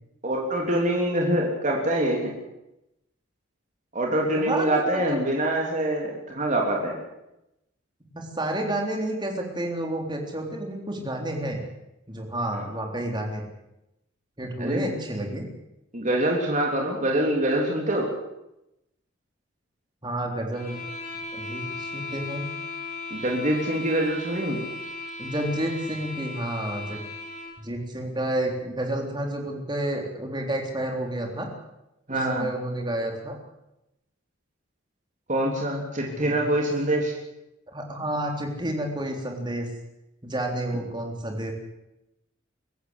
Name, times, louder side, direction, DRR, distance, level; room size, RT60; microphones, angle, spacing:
voice 1, 0.2-2.3 3.9-6.9 12.5-12.7 14.6-14.9 15.9-18.1 23.1-24.6 32.1-32.5 35.3-37.1, right 1 dB, 40° right, 0 dB, 3.4 m, -25 dB
voice 2, 4.4-5.0 8.0-11.6 12.1-13.4 14.4-15.5 20.0-20.8 21.3-22.5 25.2-27.0 27.6-31.5 32.1-33.4 36.1-36.6 37.7-39.7 40.2-41.5, right 1 dB, 20° right, 2 dB, 3.7 m, -30 dB
sound 1, 20.5-27.6, left 2 dB, 40° left, 7.7 m, -37 dB
23.5 x 14.5 x 8.2 m, 0.90 s
head